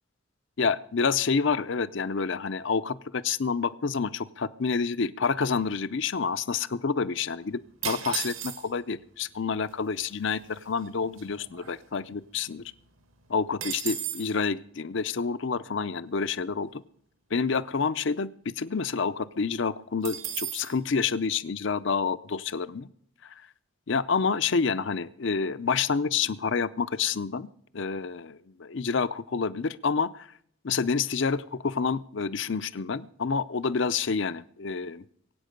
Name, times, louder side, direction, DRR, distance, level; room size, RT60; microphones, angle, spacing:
voice 1, 0.6-12.6 13.3-16.8 17.3-22.9 23.9-27.5 27.7-30.3 30.6-35.0, left 5 dB, 55° left, 16 dB, 0.6 m, -28 dB
sound 1, 7.8-8.9 9.7-9.8 10.0-10.3 10.8-12.2 12.6-12.7 13.0-14.4 20.0-20.8, right 10 dB, 65° right, 1.5 m, -35 dB
23.0 x 8.6 x 5.2 m, 0.65 s
head